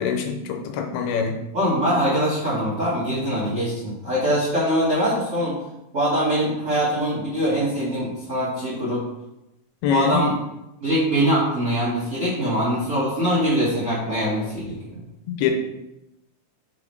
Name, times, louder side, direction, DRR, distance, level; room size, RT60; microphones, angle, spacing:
voice 1, 0.0-1.4 9.8-10.2 15.3-15.5, left 8 dB, 90° left, 4 dB, 2.7 m, -24 dB
voice 2, 1.5-5.5 5.9-9.0 9.9-10.4 10.8-14.8, equal, 35° right, -9 dB, 1.3 m, -23 dB
6.0 x 4.1 x 4.5 m, 0.91 s
omnidirectional pair, 4.3 m